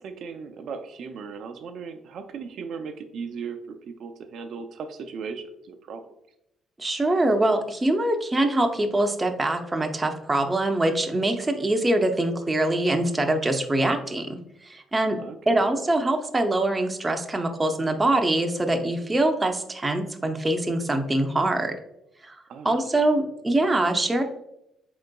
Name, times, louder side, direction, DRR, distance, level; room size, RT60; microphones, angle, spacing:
voice 1, 0.0-6.0 15.2-15.8 22.5-22.8, right 5 dB, 70° right, 6 dB, 0.4 m, -37 dB
voice 2, 6.8-15.2 15.5-21.8 22.2-22.4 22.6-24.2, right 1 dB, 20° right, 5 dB, 0.5 m, -24 dB
4.3 x 3.8 x 2.2 m, 0.80 s
cardioid pair, 90°, 0 cm